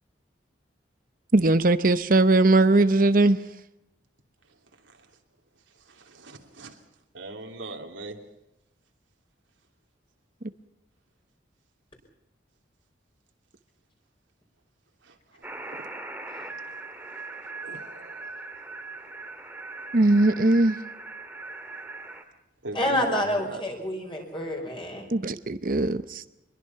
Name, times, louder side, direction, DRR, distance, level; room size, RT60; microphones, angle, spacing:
voice 1, 1.3-3.4 19.9-20.8 25.1-26.3, right 2 dB, 45° right, 0.8 m, -20 dB
voice 2, 4.8-5.1 5.7-6.8 7.1-8.2 15.0-15.9 17.1-17.2 17.6-18.4 22.6-23.6, right 2 dB, 85° right, 3.1 m, -41 dB
sound 1, 15.4-22.2, right 3 dB, 10° right, 2.0 m, -40 dB
voice 3, 22.7-25.1, left 1 dB, 25° left, 5.1 m, -28 dB
25.0 x 22.0 x 5.8 m
head